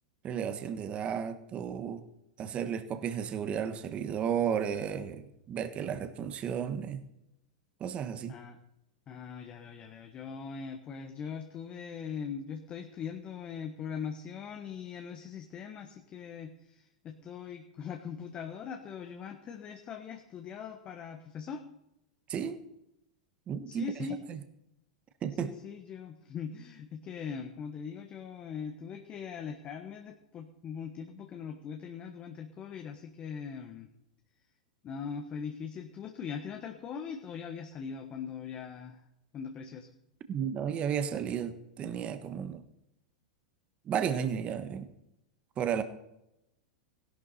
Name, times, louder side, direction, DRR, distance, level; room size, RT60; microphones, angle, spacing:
voice 1, 0.2-2.0 2.4-7.0 7.8-8.3 22.3-22.6 23.5-23.9 24.3-24.4 25.2-25.5 40.3-42.6 43.8-44.9 45.6-45.8, right 8 dB, 30° right, 1.3 m, -33 dB
voice 2, 9.1-21.6 23.7-24.2 25.4-33.9 34.8-39.0 39.3-39.9, left 6 dB, 30° left, 1.4 m, -41 dB
16.5 x 11.5 x 4.2 m
hypercardioid pair, 100°, 4 cm